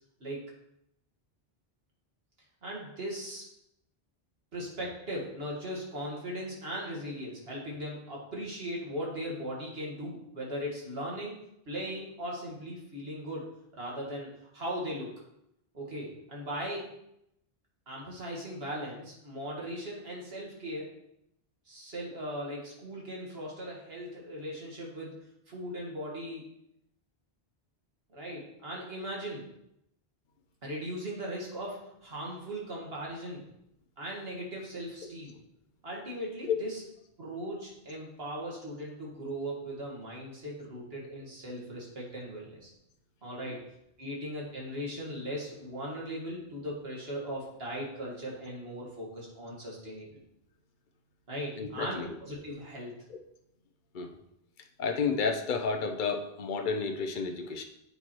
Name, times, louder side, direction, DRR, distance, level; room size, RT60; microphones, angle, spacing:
voice 1, 2.6-3.4 4.5-11.4 11.7-15.1 15.7-16.9 17.9-20.9 21.7-26.4 28.1-29.4 30.6-33.5 34.0-35.3 35.8-36.8 37.2-42.7 43.2-43.6 44.0-50.1 51.3-52.9, equal, 70° right, -3 dB, 2.2 m, -38 dB
voice 2, 51.6-52.1 53.9-54.1 54.8-57.6, left 5 dB, 55° left, 5 dB, 0.9 m, -31 dB
8.1 x 4.5 x 4.5 m, 0.79 s
omnidirectional pair, 1.0 m